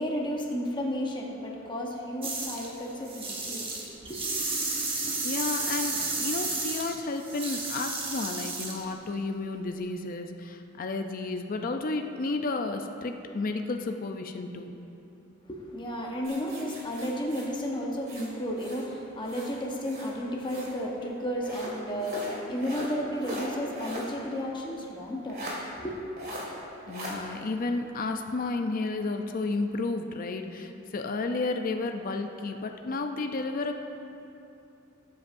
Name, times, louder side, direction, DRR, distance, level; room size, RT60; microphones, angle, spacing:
voice 1, 0.0-4.4 15.5-26.0, equal, 25° left, -1 dB, 1.0 m, -33 dB
sound 1, 2.2-2.7 3.0-8.8, right 3 dB, 25° right, 1.2 m, -32 dB
voice 2, 5.2-14.7 26.9-33.8, left 3 dB, 45° left, 5 dB, 0.5 m, -32 dB
sound 2, 16.2-18.9 19.2-20.8 21.4-24.2 24.5-24.6 25.3-25.6 26.2-26.5 26.9-27.2, equal, 50° right, 2.0 m, -40 dB
18.0 x 8.0 x 2.6 m, 2.8 s
head